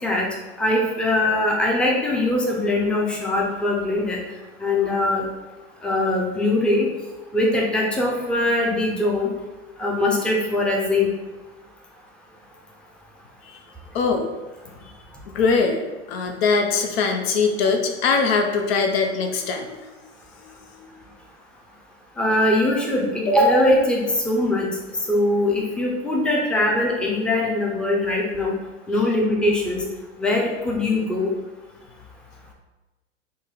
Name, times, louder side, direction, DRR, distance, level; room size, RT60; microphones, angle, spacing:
voice 1, 0.6-4.2 4.6-5.3 5.8-6.9 7.3-9.3 9.8-11.1 22.2-24.7 25.1-28.5 28.9-29.8 30.2-31.3, left 1 dB, 5° left, -2 dB, 0.6 m, -21 dB
voice 2, 13.9-14.3 15.3-19.8 20.4-20.5 20.9-21.0, left 4 dB, 55° left, 4 dB, 0.6 m, -22 dB
3.8 x 2.1 x 3.8 m, 1.1 s
figure-of-eight pair, 85°, 36 cm